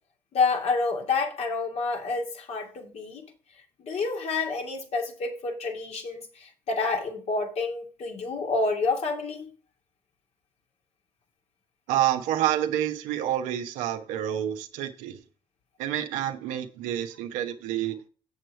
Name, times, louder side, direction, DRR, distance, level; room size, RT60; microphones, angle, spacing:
voice 1, 0.3-3.2 3.8-9.5, left 3 dB, 60° left, 2.6 m, -28 dB
voice 2, 11.9-15.2 15.8-18.1, right 11 dB, 85° right, 1.1 m, -28 dB
7.6 x 7.5 x 4.5 m
supercardioid pair, 60°, 13 cm